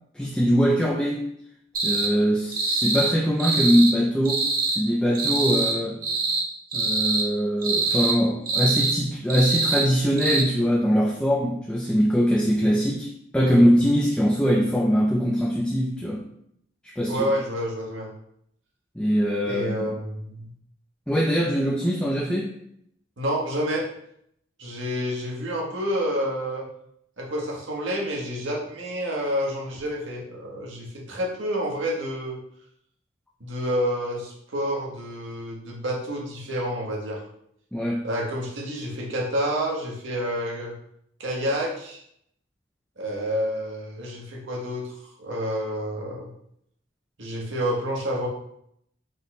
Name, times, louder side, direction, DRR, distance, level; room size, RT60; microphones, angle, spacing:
voice 1, 0.1-1.3 1.8-4.5 4.8-6.0 6.7-16.2 16.8-17.3 19.0-20.0 21.1-22.5 37.7-38.0, equal, 5° left, -3 dB, 0.3 m, -22 dB
sound 1, 1.7-2.1 2.5-3.1 3.4-3.9 4.2-4.8 5.1-5.8 6.0-6.4 6.7-7.2 7.6-8.1 8.5-9.0 9.3-9.9 10.2-10.4, right 3 dB, 45° right, 0.7 m, -24 dB
voice 2, 17.1-18.1 19.4-20.5 23.2-23.9 24.6-26.6 27.2-32.4 33.4-37.2 38.0-40.7 41.2-42.0 43.0-46.3 47.2-48.3, equal, 75° right, -2 dB, 1.1 m, -29 dB
5.1 x 2.2 x 4.0 m, 0.72 s
head